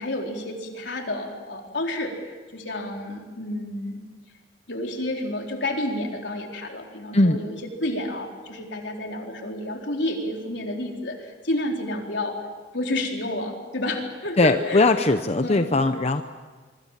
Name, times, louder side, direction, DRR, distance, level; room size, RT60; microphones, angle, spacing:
voice 1, 0.0-4.0 4.7-12.4 12.7-14.9 15.4-15.7, left 1 dB, 75° left, 1 dB, 4.1 m, -30 dB
voice 2, 14.4-16.2, left 2 dB, 35° left, 8 dB, 0.8 m, -20 dB
25.0 x 24.5 x 7.5 m, 1.4 s
head